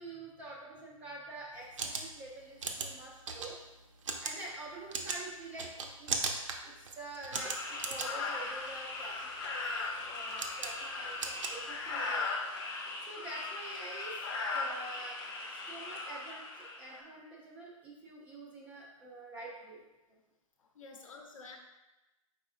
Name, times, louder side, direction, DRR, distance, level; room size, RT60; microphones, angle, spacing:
voice 1, 0.0-3.5 4.2-6.2 6.6-9.3 10.1-12.5 13.0-14.2 14.5-19.8 21.0-21.1, right 2 dB, 10° right, -4 dB, 0.3 m, -47 dB
sound 1, 1.5-12.2, right 4 dB, 60° right, 0.6 m, -40 dB
sound 2, 7.3-17.0, left 3 dB, 40° left, 0.9 m, -38 dB
voice 2, 20.6-21.6, left 4 dB, 65° left, 3 dB, 0.8 m, -50 dB
4.9 x 4.1 x 2.4 m, 1.0 s
hypercardioid pair, 150°, 18 cm